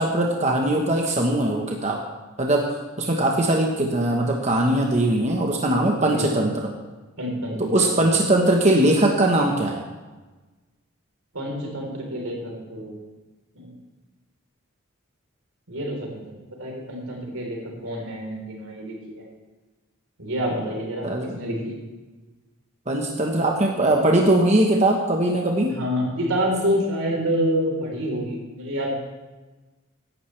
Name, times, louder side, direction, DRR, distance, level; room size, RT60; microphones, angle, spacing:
voice 1, 0.0-2.0 2.4-6.7 7.6-9.9 21.0-21.4 22.9-25.8, right 1 dB, 30° right, 0 dB, 1.1 m, -21 dB
voice 2, 7.2-8.0 11.3-13.0 13.5-13.7 15.7-19.3 20.2-21.1 21.3-21.8 25.7-28.9, equal, 85° right, -1 dB, 3.9 m, -28 dB
16.5 x 11.5 x 3.3 m, 1.2 s
head